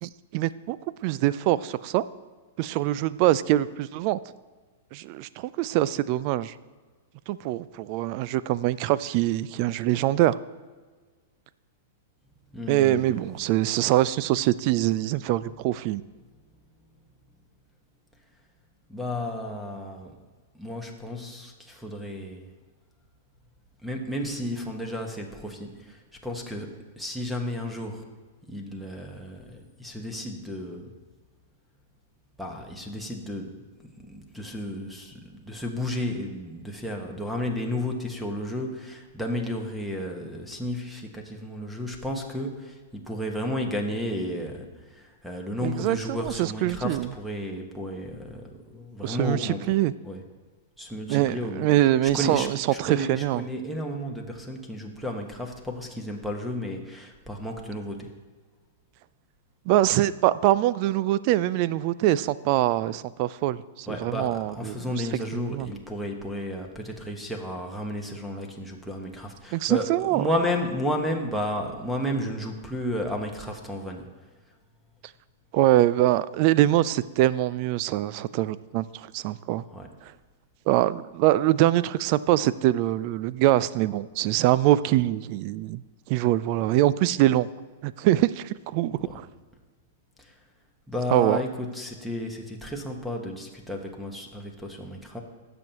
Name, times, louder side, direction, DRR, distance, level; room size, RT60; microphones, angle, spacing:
voice 1, 0.0-0.8 1.0-2.0 2.6-4.2 4.9-6.5 7.3-10.4 12.7-16.0 45.6-47.1 49.0-49.9 51.1-53.4 59.7-64.9 65.3-65.7 69.5-70.2 75.5-78.8 79.1-79.6 80.7-85.8 86.1-87.5 87.8-89.0 91.1-91.4, right 14 dB, 50° right, 17 dB, 0.4 m, -23 dB
voice 2, 12.5-13.1 18.9-20.1 20.5-22.5 23.8-28.1 28.5-30.9 32.4-33.6 34.0-49.7 50.0-50.2 50.8-51.7 52.0-58.1 63.9-74.1 79.7-79.9 88.9-89.2 90.2-90.3 90.9-95.2, left 1 dB, ahead, 2 dB, 1.4 m, -33 dB
16.5 x 7.0 x 3.0 m, 1.4 s
hypercardioid pair, 110°, 0 cm